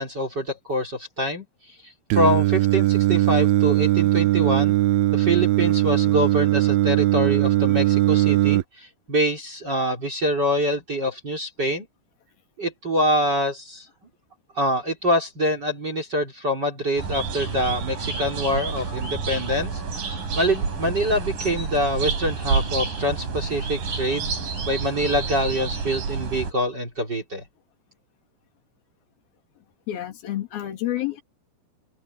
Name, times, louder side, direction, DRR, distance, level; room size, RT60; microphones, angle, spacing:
voice 1, 0.0-1.4 1.8-4.7 5.1-11.9 12.6-13.9 14.6-19.8 20.4-24.3 24.7-27.4, equal, 25° right, 4.1 m, -25 dB
Singing, 2.1-8.6, right 15 dB, 80° right, 2.5 m, -19 dB
sound 1, 17.0-26.5, right 5 dB, 55° right, 6.5 m, -29 dB
voice 2, 29.9-31.2, left 13 dB, 70° left, 4.3 m, -29 dB
omnidirectional pair, 4.6 m